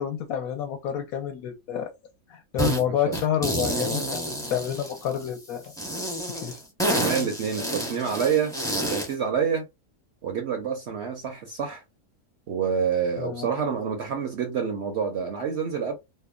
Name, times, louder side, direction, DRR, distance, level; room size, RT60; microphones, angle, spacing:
voice 1, 0.0-1.9 2.3-5.7 6.4-6.6 13.2-13.5, left 9 dB, 70° left, 1.1 m, -29 dB
sound 1, 2.6-2.8 3.1-5.3 5.8-9.1, right 1 dB, 5° left, 0.5 m, -28 dB
voice 2, 2.8-3.2 6.9-9.6 10.2-11.8 12.5-15.9, right 7 dB, 65° right, 0.7 m, -28 dB
2.8 x 2.1 x 2.3 m
omnidirectional pair, 1.6 m